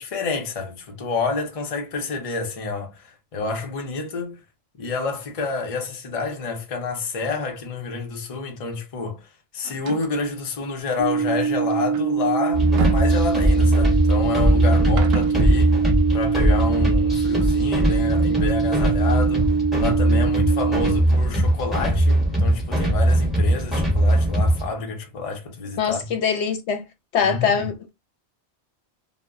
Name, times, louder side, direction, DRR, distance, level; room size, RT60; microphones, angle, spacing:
voice 1, 0.0-4.4 4.8-15.7 16.1-19.5 19.8-26.1 27.2-27.6, left 4 dB, 40° left, 0.6 m, -29 dB
sound 1, 9.7-10.2 11.3-13.7 14.8-15.5, right 6 dB, 65° right, 0.8 m, -32 dB
sound 2, 11.0-21.0, right 5 dB, 35° right, 0.3 m, -23 dB
sound 3, 12.5-24.7, right 1 dB, ahead, 0.9 m, -20 dB
voice 2, 25.8-26.9 27.1-27.9, left 6 dB, 75° left, 0.9 m, -23 dB
2.1 x 2.1 x 3.5 m
omnidirectional pair, 1.1 m